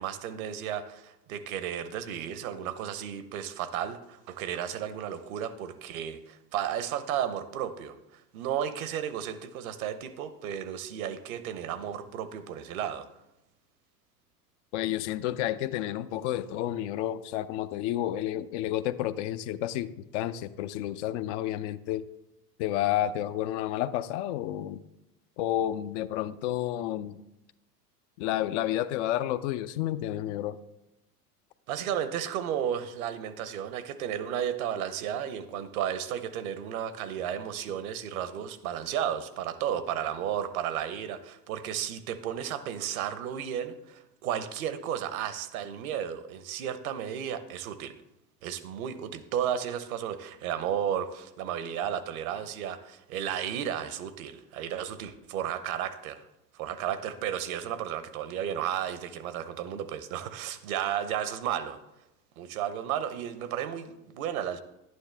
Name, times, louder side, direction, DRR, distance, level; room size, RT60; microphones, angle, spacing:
voice 1, 0.0-13.1 31.7-48.0 48.4-56.2 56.5-61.8 62.4-64.6, right 9 dB, 60° right, 13 dB, 1.0 m, -33 dB
voice 2, 14.7-19.9 20.1-22.0 22.6-24.8 25.4-27.2 28.2-30.6, left 13 dB, 50° left, 12 dB, 0.6 m, -30 dB
11.5 x 9.5 x 3.4 m, 0.91 s
figure-of-eight pair, 85°, 48 cm